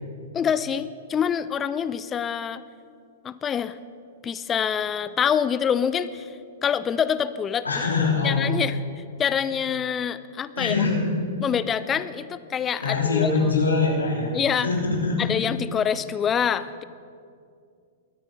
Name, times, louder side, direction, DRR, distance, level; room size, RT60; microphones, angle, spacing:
voice 1, 0.3-2.6 3.2-3.8 4.2-6.3 6.6-7.6 8.2-8.8 9.2-10.7 11.4-13.5 14.3-14.7 15.2-16.8, left 8 dB, 20° left, 14 dB, 0.5 m, -26 dB
voice 2, 7.6-8.6 10.6-11.0 12.8-14.3 14.6-15.2, left 4 dB, 90° left, -3 dB, 3.4 m, -23 dB
22.0 x 9.9 x 4.0 m, 2.3 s
hypercardioid pair, 110°, 0 cm